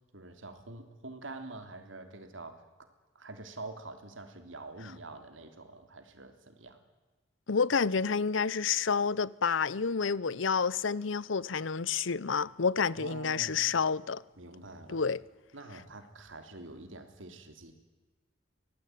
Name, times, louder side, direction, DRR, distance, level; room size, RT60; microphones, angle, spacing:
voice 1, 0.0-2.7 3.1-6.8 13.0-13.8 14.4-15.0 15.5-17.7, right 2 dB, 85° right, 3.3 m, -46 dB
voice 2, 7.5-14.2 14.9-15.2, left 5 dB, 75° left, 0.7 m, -29 dB
24.5 x 18.5 x 9.3 m
head